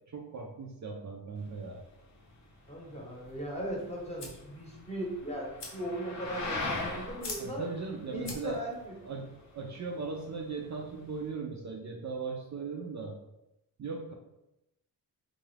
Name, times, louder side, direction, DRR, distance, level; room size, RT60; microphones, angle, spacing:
voice 1, 0.1-1.8 7.4-8.6 9.0-13.1 13.8-14.1, right 4 dB, 45° right, 0 dB, 0.4 m, -38 dB
sound 1, 1.4-11.3, left 2 dB, 45° left, 0.7 m, -42 dB
voice 2, 2.7-7.6 8.1-8.9, right 1 dB, 15° left, -2 dB, 0.9 m, -38 dB
sound 2, 3.1-8.8, left 3 dB, 80° left, 0.8 m, -47 dB
3.8 x 2.4 x 3.2 m, 0.91 s
wide cardioid pair, 120°, 41 cm